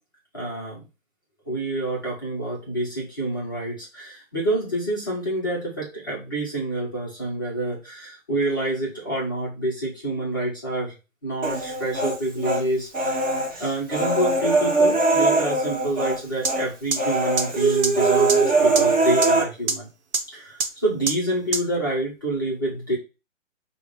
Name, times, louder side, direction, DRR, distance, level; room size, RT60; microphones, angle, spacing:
voice 1, 0.3-0.8 1.5-10.9 11.2-13.3 13.6-19.9 20.3-23.0, right 1 dB, 15° left, -6 dB, 0.5 m, -27 dB
Human voice, 11.4-12.6 12.9-16.2 16.4-16.7 17.0-19.4, right 3 dB, 25° right, 1.0 m, -21 dB
sound 1, 16.4-16.5 16.9-17.0 17.4-17.5 17.8-17.9 18.3-18.4 18.8-18.9 19.2-19.3 19.7-19.8 20.1-20.2 20.6-20.7 21.1-21.2 21.5-21.6, right 4 dB, 55° right, 0.9 m, -22 dB
4.9 x 2.0 x 3.6 m, 0.29 s
hypercardioid pair, 150°, 40 cm